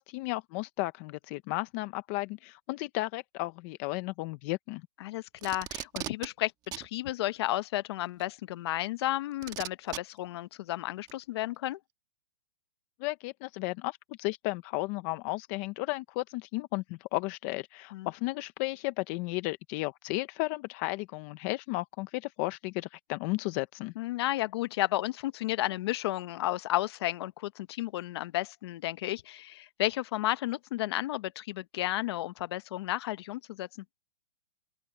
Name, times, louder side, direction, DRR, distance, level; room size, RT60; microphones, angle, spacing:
voice 1, 0.0-4.8 13.0-23.9, left 21 dB, 25° left, 0.7 m, -34 dB
voice 2, 5.0-6.5 6.8-11.8 17.9-18.1 24.0-33.7, left 16 dB, 40° left, 1.0 m, -32 dB
Packing tape duct tape, 5.4-6.3 6.7-6.9 8.2-8.3 9.4-10.0 11.1-11.2, right 14 dB, 20° right, 1.3 m, -37 dB
open air
hypercardioid pair, 165°, 20 cm